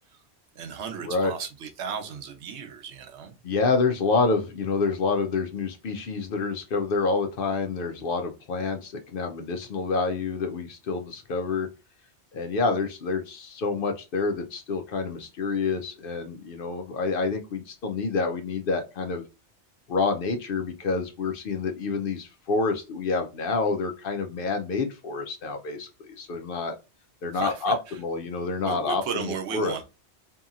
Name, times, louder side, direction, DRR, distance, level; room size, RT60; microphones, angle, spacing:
voice 1, 0.6-3.4 27.3-27.7 28.6-29.9, right 7 dB, 80° right, 0.9 m, -35 dB
voice 2, 3.4-11.7 12.3-19.2 19.9-26.7 27.2-29.9, left 4 dB, 60° left, 0.6 m, -28 dB
2.8 x 2.7 x 2.4 m
omnidirectional pair, 1.2 m